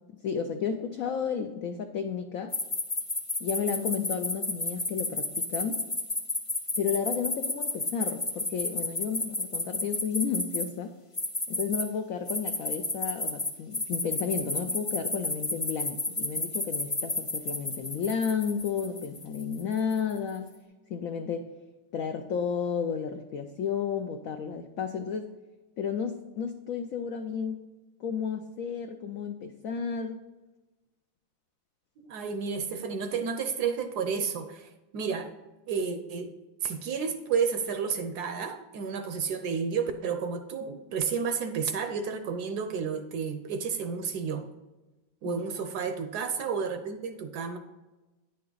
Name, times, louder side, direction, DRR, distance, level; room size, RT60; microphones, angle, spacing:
voice 1, 0.2-2.6 3.4-5.9 6.8-10.9 11.5-20.5 20.9-21.5 21.9-25.3 25.8-27.7 28.0-30.2 45.2-45.4, left 6 dB, 90° left, 6 dB, 0.7 m, -32 dB
sound 1, 2.5-10.6 11.2-11.8 12.3-20.1, left 2 dB, 35° left, 0.5 m, -31 dB
voice 2, 32.0-35.3 35.7-36.3 36.6-44.5 45.2-47.6, right 6 dB, 70° right, 8 dB, 1.0 m, -31 dB
9.5 x 5.8 x 3.9 m, 1.1 s
omnidirectional pair, 2.1 m